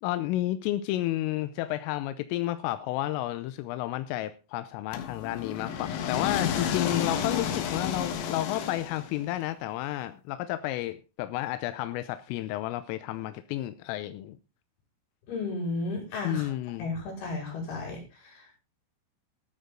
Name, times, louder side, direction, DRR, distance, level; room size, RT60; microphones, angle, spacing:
voice 1, 0.0-14.4 16.2-16.9, left 15 dB, 90° left, 12 dB, 3.4 m, -31 dB
sound 1, 4.9-9.3, left 8 dB, 70° left, 3.8 m, -31 dB
voice 2, 15.3-16.5 16.8-18.6, left 3 dB, 50° left, 1 dB, 7.1 m, -34 dB
13.5 x 12.5 x 3.9 m, 0.31 s
omnidirectional pair, 5.7 m